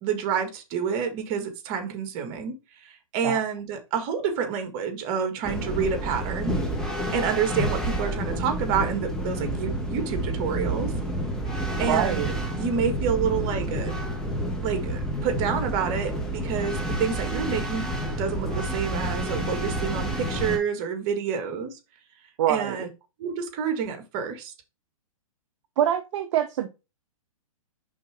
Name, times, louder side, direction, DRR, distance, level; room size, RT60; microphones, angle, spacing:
voice 1, 0.0-6.6 7.1-10.9 11.8-12.3 12.6-13.9 14.6-17.9 18.2-21.8 22.5-22.9 23.2-24.5, right 7 dB, 40° right, 1.6 m, -28 dB
sound 1, 5.4-20.6, right 1 dB, 5° left, 1.3 m, -29 dB
voice 2, 11.8-12.3 22.4-22.8 25.8-26.7, right 11 dB, 55° right, 0.7 m, -25 dB
5.3 x 3.8 x 4.8 m
hypercardioid pair, 125°, 18 cm